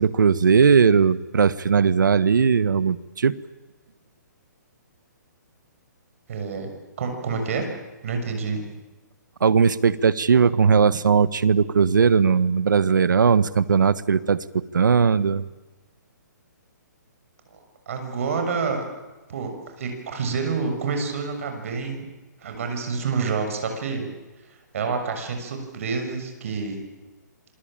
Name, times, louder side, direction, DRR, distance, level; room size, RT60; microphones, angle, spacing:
voice 1, 0.0-3.4 9.4-15.5, right 6 dB, 85° right, 16 dB, 1.3 m, -19 dB
voice 2, 6.3-6.7 7.0-7.7 8.0-8.7 17.9-18.8 19.3-22.0 22.4-24.1 24.7-26.8, right 5 dB, 45° right, 5 dB, 6.5 m, -28 dB
27.0 x 23.5 x 9.0 m, 1.2 s
hypercardioid pair, 165°, 10 cm